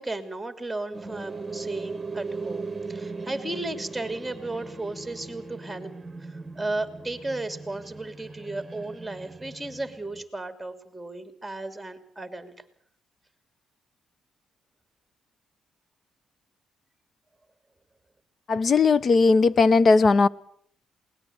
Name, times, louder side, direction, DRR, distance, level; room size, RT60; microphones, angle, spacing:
voice 1, 0.0-5.9 6.2-12.5, right 2 dB, 5° right, 3.0 m, -34 dB
sound 1, 0.9-10.2, right 3 dB, 20° right, 1.5 m, -38 dB
voice 2, 18.5-20.3, left 4 dB, 45° left, 0.9 m, -18 dB
21.5 x 19.0 x 8.0 m
cardioid pair, 90°, 0 cm